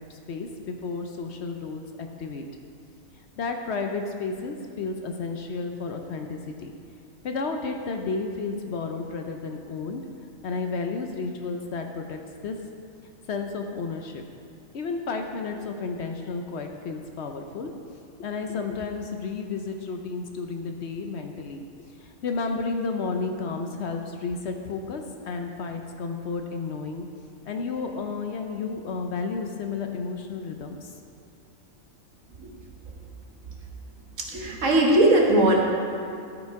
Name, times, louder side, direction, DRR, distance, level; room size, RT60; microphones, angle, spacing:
voice 1, 0.1-2.5 3.4-6.7 7.2-10.0 10.4-12.6 13.3-14.2 14.7-17.7 18.2-21.6 22.0-27.1 27.5-30.9, left 4 dB, 60° left, 4 dB, 0.8 m, -32 dB
voice 2, 34.2-35.6, right 1 dB, 70° right, -1 dB, 1.6 m, -19 dB
12.5 x 5.1 x 4.7 m, 2.5 s
omnidirectional pair, 1.4 m